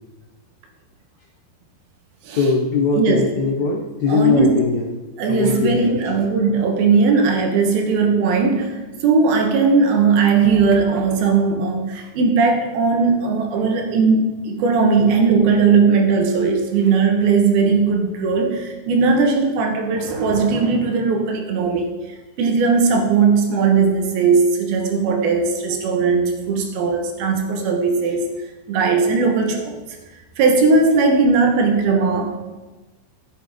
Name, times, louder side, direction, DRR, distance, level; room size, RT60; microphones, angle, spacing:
voice 1, 2.3-4.9 5.3-6.3, left 4 dB, 70° left, 2 dB, 1.8 m, -20 dB
voice 2, 3.0-3.3 4.1-4.5 5.2-21.9 22.4-28.3 28.7-29.8 30.4-32.3, right 4 dB, 80° right, 4 dB, 3.2 m, -18 dB
12.0 x 8.1 x 5.1 m, 1.2 s
omnidirectional pair, 4.4 m